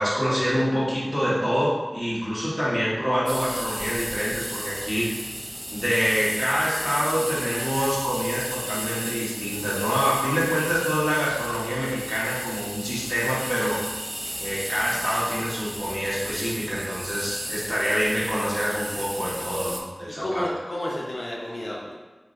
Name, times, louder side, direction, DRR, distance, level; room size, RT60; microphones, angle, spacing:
voice 1, 0.0-5.2 5.7-13.8 14.4-20.5, equal, 5° left, -9 dB, 1.2 m, -26 dB
sound 1, 3.3-19.8, right 1 dB, 20° right, 0.3 m, -34 dB
voice 2, 20.1-21.9, left 1 dB, 70° left, -4 dB, 0.5 m, -31 dB
4.3 x 2.0 x 2.5 m, 1.2 s
wide cardioid pair, 60°, 0 cm